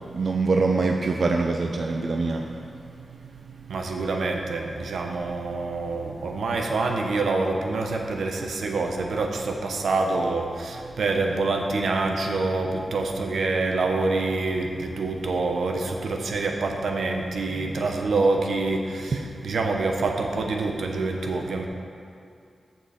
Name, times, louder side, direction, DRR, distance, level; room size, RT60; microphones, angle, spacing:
voice 1, 0.2-2.4, right 3 dB, 55° right, 2 dB, 0.6 m, -23 dB
voice 2, 3.7-21.7, right 3 dB, 90° right, 2 dB, 1.0 m, -26 dB
14.5 x 5.9 x 4.3 m, 2.5 s
wide cardioid pair, 125°, 0 cm